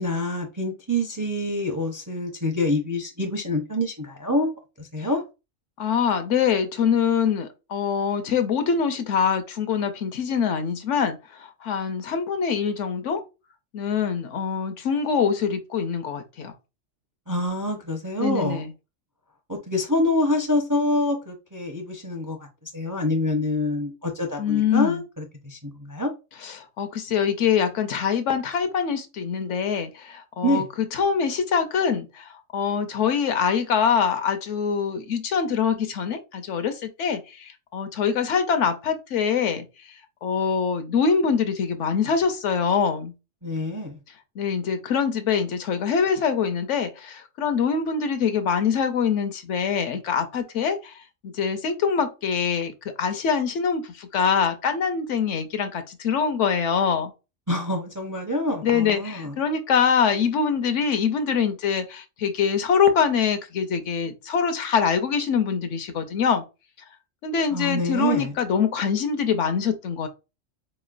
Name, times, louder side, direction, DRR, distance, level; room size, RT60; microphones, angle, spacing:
voice 1, 0.0-4.5 4.8-5.2 17.3-18.6 19.5-22.4 22.7-26.1 30.4-30.7 43.4-44.0 57.5-59.3 67.5-68.3, left 1 dB, 25° right, 0.4 m, -26 dB
voice 2, 5.8-11.2 11.6-13.2 13.7-16.5 18.2-18.7 24.4-25.0 26.4-30.6 30.9-32.2 32.5-39.7 40.2-43.1 44.4-50.9 51.2-52.7 53.0-57.1 58.6-66.4 67.2-70.1, left 6 dB, 75° left, 0.9 m, -24 dB
4.2 x 3.0 x 2.4 m
omnidirectional pair, 1.3 m